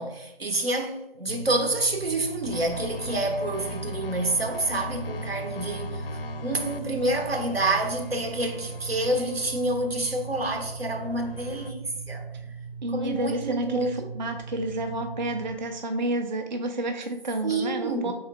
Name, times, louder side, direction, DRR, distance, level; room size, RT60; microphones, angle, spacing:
voice 1, 0.0-6.1 6.4-12.3 12.9-14.1 17.4-18.1, right 2 dB, 85° right, 1.0 m, -28 dB
sound 1, 1.3-15.6, right 5 dB, 5° right, 0.9 m, -39 dB
sound 2, 2.4-11.7, left 3 dB, 75° left, 0.4 m, -40 dB
voice 2, 12.8-18.1, right 1 dB, 50° right, 0.4 m, -30 dB
3.6 x 3.1 x 4.7 m
figure-of-eight pair, 160°, 29 cm